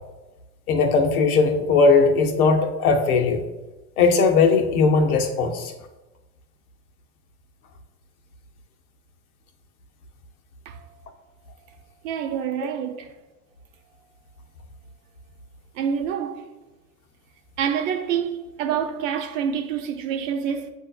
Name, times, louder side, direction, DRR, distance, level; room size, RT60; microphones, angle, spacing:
voice 1, 0.7-3.4 4.0-5.7, left 4 dB, 80° left, 0.8 m, -18 dB
voice 2, 12.0-13.0 15.8-16.4 17.6-20.7, right 8 dB, 65° right, 0.7 m, -27 dB
7.7 x 2.7 x 2.3 m
hypercardioid pair, 95°, 43 cm